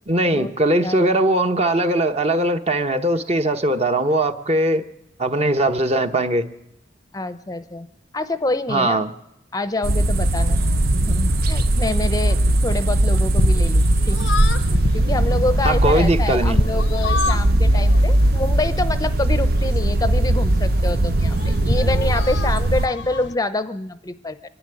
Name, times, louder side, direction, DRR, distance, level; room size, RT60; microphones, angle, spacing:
voice 1, 0.1-4.8 5.2-6.5 8.7-9.1 15.6-16.6, right 1 dB, 35° right, 7 dB, 1.1 m, -20 dB
voice 2, 7.1-7.9 8.1-9.0 9.5-10.6 11.1-14.3 14.9-24.4, left 2 dB, 20° left, 12 dB, 0.7 m, -26 dB
sound 1, 9.8-22.9, right 1 dB, 55° right, 0.7 m, -19 dB
sound 2, 10.1-23.4, left 4 dB, 80° left, 0.7 m, -31 dB
24.0 x 11.5 x 9.8 m, 0.80 s
head